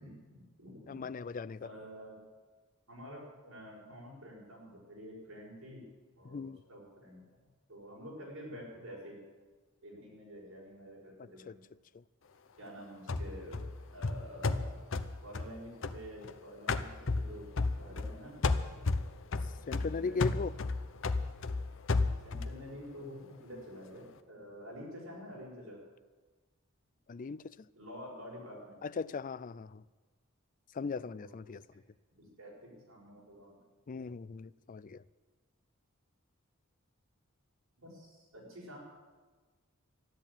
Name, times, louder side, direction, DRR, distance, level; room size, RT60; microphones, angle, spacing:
voice 1, 0.0-1.0 1.6-2.1 2.9-5.8 6.1-7.2 7.7-9.2 9.8-11.6 12.6-13.6 13.9-14.8 15.2-18.4 19.7-20.4 22.2-25.8 27.8-28.8 30.9-31.6 32.2-33.6 37.8-38.8, equal, 75° right, 6.4 m, -49 dB
voice 2, 0.9-1.7 6.3-6.6 11.2-11.6 19.7-20.5 27.1-27.6 28.8-29.8 30.7-31.6 33.9-35.0, left 4 dB, 40° left, 0.4 m, -38 dB
sound 1, 13.1-16.3 16.7-18.2 18.4-22.6, left 3 dB, 65° left, 0.8 m, -33 dB
13.0 x 11.0 x 8.8 m
head